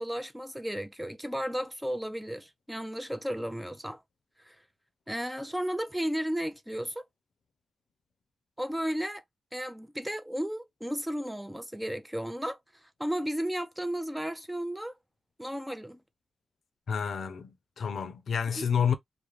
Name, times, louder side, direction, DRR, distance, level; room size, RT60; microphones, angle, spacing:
voice 1, 0.0-4.0 4.4-4.6 5.1-7.0 8.6-9.2 9.5-12.6 13.0-15.0 15.4-16.0 18.6-18.7, equal, 5° right, 0.4 m, -34 dB
voice 2, 16.9-18.9, left 7 dB, 75° left, 0.5 m, -29 dB
2.4 x 2.0 x 3.1 m
cardioid pair, 90°, 0 cm